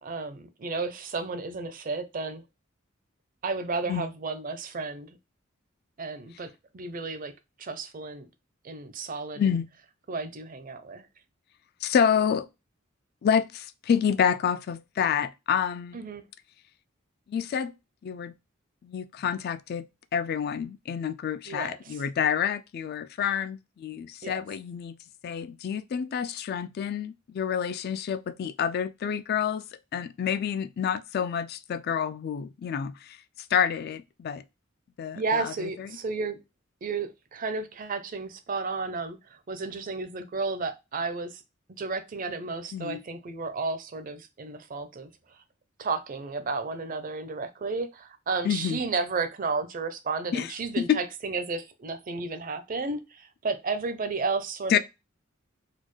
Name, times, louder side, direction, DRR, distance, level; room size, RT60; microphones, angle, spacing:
voice 1, 0.0-2.4 3.4-5.2 6.0-7.3 7.6-8.3 8.6-9.6 10.1-11.1 15.9-16.2 21.5-22.0 24.2-24.4 35.2-36.4 36.8-41.4 41.8-45.4 45.8-54.8, right 4 dB, 40° right, 0.5 m, -33 dB
voice 2, 9.4-9.7 11.8-12.5 13.2-16.0 17.3-17.7 18.0-18.3 18.8-19.8 20.1-25.0 25.2-29.6 29.9-33.2 33.5-34.4 35.0-35.5 42.7-43.0 48.4-48.8 50.3-50.5 50.8-51.0 54.7-54.8, left 8 dB, 50° left, 0.3 m, -28 dB
4.1 x 2.3 x 3.1 m
head